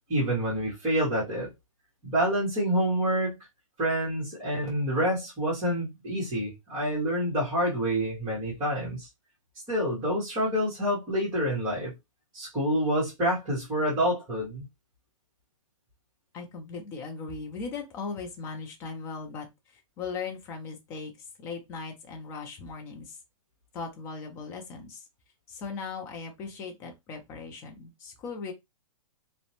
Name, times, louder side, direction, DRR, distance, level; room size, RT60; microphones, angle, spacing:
voice 1, 0.1-1.5 2.0-3.4 3.8-9.1 9.7-11.9 12.3-14.6, equal, 20° right, 1.1 m, -27 dB
voice 2, 16.3-19.5 20.0-21.1 21.4-23.2 23.7-25.0 25.5-28.5, left 4 dB, 15° left, 0.3 m, -38 dB
2.5 x 2.0 x 2.8 m
hypercardioid pair, 160°, 18 cm